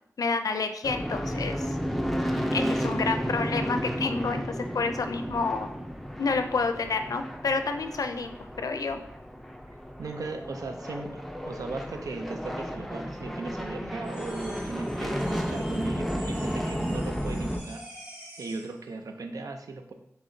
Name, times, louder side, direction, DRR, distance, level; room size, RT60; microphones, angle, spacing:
voice 1, 0.2-1.8 2.5-4.4 4.7-5.7 6.2-9.0, left 4 dB, 80° left, 8 dB, 0.4 m, -29 dB
sound 1, 0.8-17.6, equal, ahead, 0.4 m, -32 dB
voice 2, 2.4-2.9 10.0-17.8 18.4-19.9, right 3 dB, 90° right, 6 dB, 0.5 m, -37 dB
sound 2, 14.0-18.8, right 1 dB, 20° right, 1.4 m, -46 dB
6.3 x 3.0 x 2.7 m, 0.75 s
wide cardioid pair, 85°, 6 cm